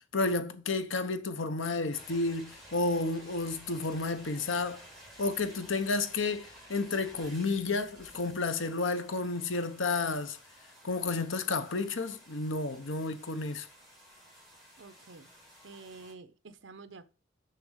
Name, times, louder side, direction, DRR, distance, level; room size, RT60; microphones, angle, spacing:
voice 1, 0.1-4.8 5.2-10.4 10.8-13.7, left 3 dB, 80° left, 1.0 m, -31 dB
sound 1, 1.9-16.1, equal, ahead, 4.2 m, -54 dB
voice 2, 14.8-15.3 15.6-17.1, right 4 dB, 70° right, 0.8 m, -49 dB
6.8 x 6.2 x 6.3 m
head